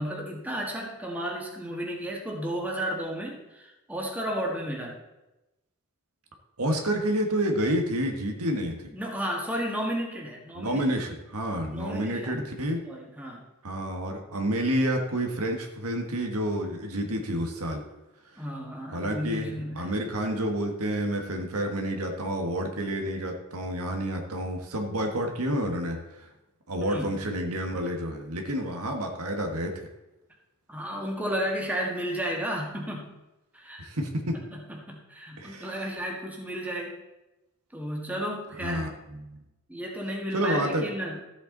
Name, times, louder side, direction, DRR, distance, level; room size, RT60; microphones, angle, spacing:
voice 1, 0.0-5.0 8.9-10.8 11.7-12.5 12.9-13.4 18.4-19.9 26.8-27.1 30.7-33.1 33.5-33.8 34.3-37.0 37.7-38.9 39.7-41.2, equal, 5° right, -1 dB, 1.8 m, -33 dB
voice 2, 6.6-8.9 10.5-12.8 13.6-17.8 18.9-26.3 26.7-29.9 33.8-34.4 35.4-35.7 38.6-39.4 40.3-40.8, right 1 dB, 75° right, 3 dB, 1.5 m, -29 dB
13.5 x 8.2 x 3.9 m, 0.99 s
head